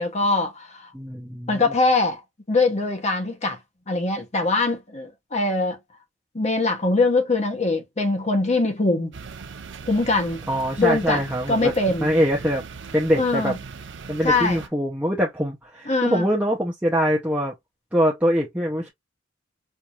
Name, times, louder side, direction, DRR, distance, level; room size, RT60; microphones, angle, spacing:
voice 1, 0.0-0.9 1.5-2.2 2.5-3.6 3.9-5.8 6.3-9.1 9.9-10.4 10.8-11.2 11.5-12.1 13.2-13.6 14.2-14.6 15.9-16.3, left 3 dB, 35° left, 1.0 m, -22 dB
voice 2, 0.9-1.7 10.5-11.7 12.0-12.6 12.9-13.5 14.1-17.5 17.9-18.9, equal, 10° right, 0.8 m, -23 dB
sound 1, 9.1-14.7, right 5 dB, 65° right, 0.6 m, -39 dB
4.6 x 2.6 x 2.5 m
head